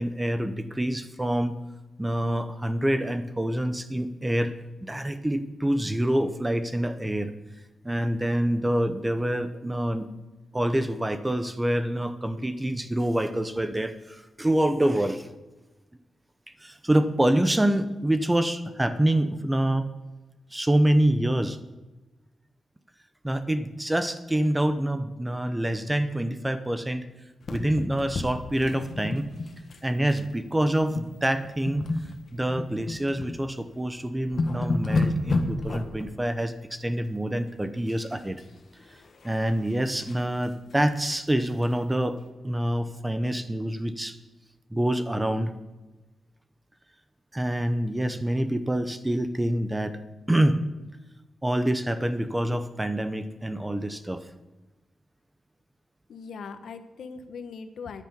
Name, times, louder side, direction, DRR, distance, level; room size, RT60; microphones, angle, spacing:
voice 1, 0.0-1.6 2.0-4.6 4.9-7.3 7.8-10.1 10.5-15.3 16.6-19.9 20.5-21.6 23.2-27.1 27.5-29.3 29.8-31.9 32.3-38.4 39.2-42.2 42.4-44.2 44.7-45.5 47.3-50.0 50.3-50.6 51.4-54.2, right 1 dB, 10° right, 11 dB, 0.8 m, -26 dB
sound 1, 27.4-29.8 30.1-30.3 30.8-31.1 31.4-33.3 33.8-33.9 34.2-36.1 37.9-38.4 38.8-40.2 40.7-40.8 41.1-41.2 41.6-41.7, left 2 dB, 45° left, 1.4 m, -31 dB
voice 2, 56.1-58.0, left 5 dB, 75° left, 9 dB, 1.2 m, -40 dB
10.5 x 9.6 x 6.8 m, 1.1 s
wide cardioid pair, 160°, 0 cm